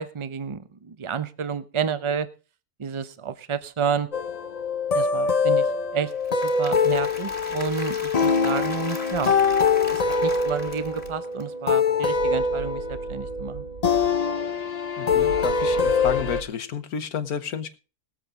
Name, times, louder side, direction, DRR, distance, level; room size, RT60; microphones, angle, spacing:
voice 1, 0.0-2.3 2.8-4.1 4.9-5.7 5.9-9.4 9.9-13.6, right 7 dB, 30° right, 0.6 m, -30 dB
sound 1, 4.1-16.4, left 5 dB, 50° left, 0.4 m, -24 dB
Applause / Crowd, 6.1-11.4, left 1 dB, 30° left, 2.8 m, -39 dB
sound 2, 6.9-8.1 9.1-11.1 12.1-14.2 15.1-16.4, right 7 dB, 60° right, 1.6 m, -40 dB
voice 2, 15.0-17.8, left 8 dB, 70° left, 1.5 m, -31 dB
20.0 x 7.9 x 3.8 m
omnidirectional pair, 1.6 m